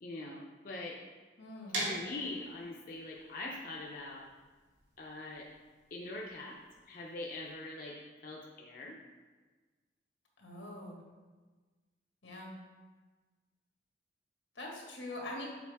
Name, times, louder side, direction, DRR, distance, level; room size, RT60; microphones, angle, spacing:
voice 1, 0.0-1.0 1.7-4.2 5.0-5.4 5.9-6.6 6.9-8.0 8.2-9.0, left 2 dB, 50° left, -3 dB, 0.6 m, -43 dB
voice 2, 1.4-1.9 10.4-11.0 12.2-12.5 14.6-15.5, left 1 dB, 90° left, -2 dB, 1.8 m, -43 dB
sound 1, 1.7-7.5, right 1 dB, 85° right, 2.0 m, -42 dB
7.2 x 4.9 x 3.5 m, 1.3 s
head